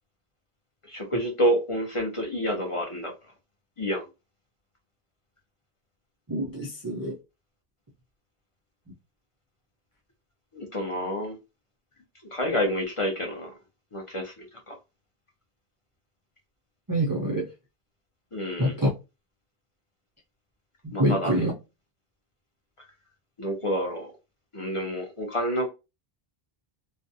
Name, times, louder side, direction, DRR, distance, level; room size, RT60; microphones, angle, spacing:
voice 1, 0.9-3.1 3.8-4.1 10.5-11.4 12.3-13.5 13.9-14.7 18.3-18.7 20.9-21.4 23.4-24.1 24.5-25.7, equal, 35° left, 0.6 m, -28 dB
voice 2, 6.3-7.1 16.9-17.5 18.6-18.9 21.0-21.5, equal, 30° right, 0.4 m, -25 dB
2.4 x 2.1 x 2.7 m
omnidirectional pair, 1.0 m